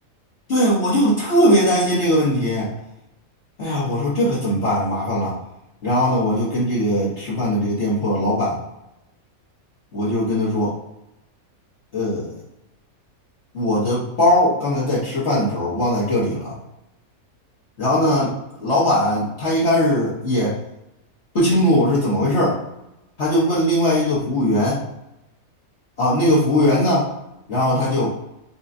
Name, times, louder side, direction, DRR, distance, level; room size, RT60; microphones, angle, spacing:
voice 1, 0.5-2.7 3.6-5.4 5.8-8.6 9.9-10.7 11.9-12.3 13.5-16.5 17.8-20.5 21.3-22.6 23.2-24.8 26.0-27.1 27.5-28.1, left 1 dB, 50° left, -9 dB, 1.3 m, -19 dB
6.8 x 2.3 x 2.6 m, 0.90 s
omnidirectional pair, 1.5 m